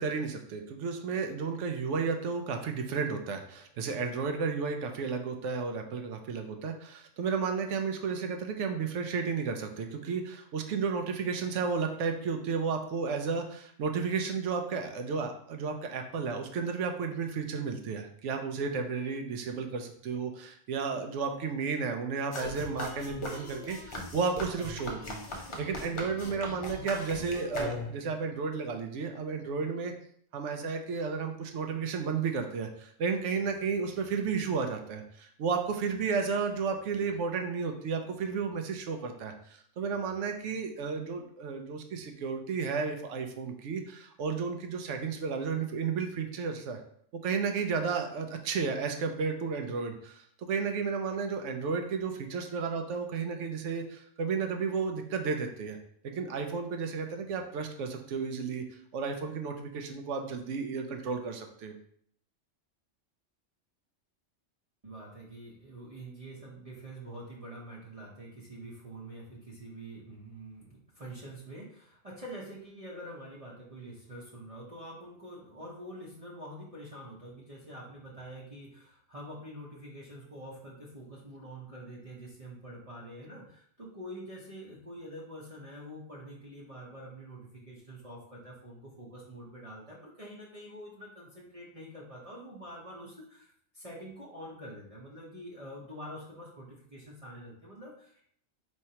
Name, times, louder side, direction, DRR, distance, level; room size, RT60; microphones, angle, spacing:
voice 1, 0.0-25.2 25.6-29.9 30.3-46.8 47.2-55.8 56.1-58.6 58.9-61.7, right 5 dB, 75° right, 5 dB, 0.9 m, -33 dB
sound 1, 22.3-28.1, left 1 dB, 35° left, 0.5 m, -39 dB
voice 2, 64.8-98.3, right 1 dB, 35° right, -5 dB, 0.8 m, -46 dB
4.5 x 3.2 x 2.8 m, 0.64 s
omnidirectional pair, 1.3 m